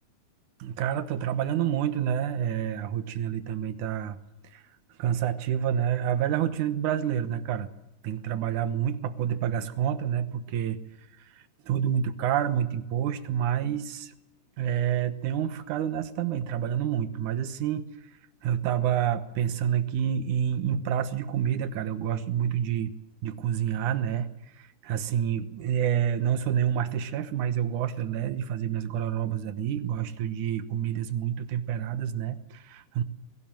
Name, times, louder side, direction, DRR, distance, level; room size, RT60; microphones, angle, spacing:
voice 1, 0.6-4.2 4.5-4.6 5.0-7.7 8.0-10.8 11.7-14.1 14.6-17.9 18.4-22.9 23.2-24.3 24.6-33.0, right 9 dB, 80° right, 11 dB, 2.7 m, -28 dB
21.0 x 17.0 x 7.6 m, 0.92 s
omnidirectional pair, 3.4 m